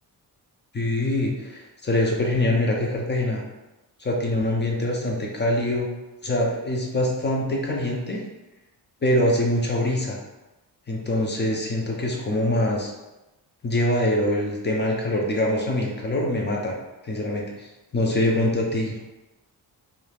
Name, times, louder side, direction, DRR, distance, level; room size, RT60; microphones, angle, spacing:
voice 1, 0.7-3.4 4.0-5.9 6.2-8.2 9.0-10.2 10.9-12.9 13.6-16.7 17.0-17.7 17.9-19.0, left 1 dB, 30° left, -1 dB, 0.6 m, -24 dB
2.7 x 2.4 x 3.3 m, 1.0 s
wide cardioid pair, 125°, 38 cm